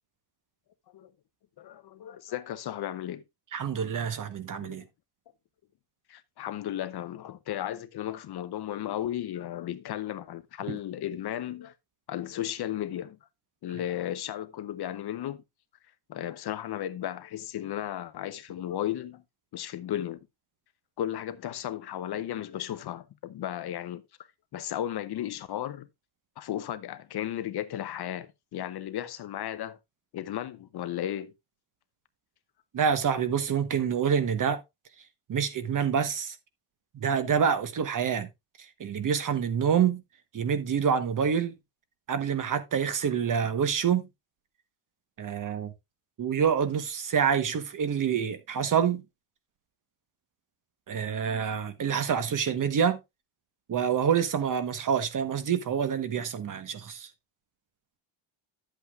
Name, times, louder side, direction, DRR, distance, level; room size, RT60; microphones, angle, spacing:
voice 1, 1.6-3.2 4.6-4.8 6.1-11.7 12.1-13.2 13.6-15.4 16.1-19.2 19.5-20.2 21.0-24.0 24.5-25.9 26.4-29.8 30.1-31.3, left 11 dB, 50° left, 0.7 m, -34 dB
voice 2, 3.5-4.8 10.7-10.8 32.7-34.6 35.3-36.4 36.9-38.3 38.6-40.0 40.3-41.6 42.1-44.1 45.2-45.7 46.2-49.0 50.9-53.0 53.7-57.1, right 7 dB, 40° right, 1.1 m, -27 dB
11.5 x 8.2 x 2.3 m
cardioid pair, 150°, 50 cm